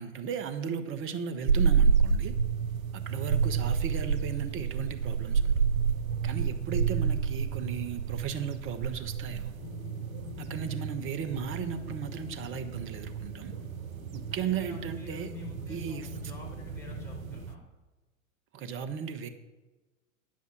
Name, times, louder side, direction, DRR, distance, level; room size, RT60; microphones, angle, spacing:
voice 1, 0.0-2.4 2.9-5.6 6.2-9.5 10.4-13.5 14.1-15.3 15.7-16.1 18.5-19.3, right 7 dB, 30° right, 10 dB, 1.0 m, -36 dB
sound 1, 1.5-17.6, right 6 dB, 80° right, 0.7 m, -30 dB
sound 2, 9.6-17.5, left 8 dB, 70° left, 1.1 m, -46 dB
voice 2, 14.3-17.6, equal, 5° left, -1 dB, 3.7 m, -50 dB
9.5 x 7.4 x 5.9 m, 1.2 s
figure-of-eight pair, 95°, 41 cm